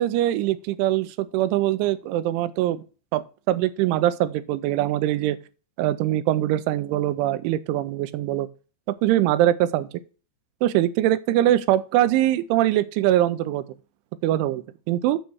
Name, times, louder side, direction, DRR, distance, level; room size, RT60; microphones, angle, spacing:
voice 1, 0.0-2.8 3.1-3.2 3.5-5.4 5.8-8.5 9.0-9.9 10.6-13.6 14.2-15.2, right 13 dB, 85° right, 3.0 m, -22 dB
8.9 x 6.9 x 4.6 m
omnidirectional pair, 5.5 m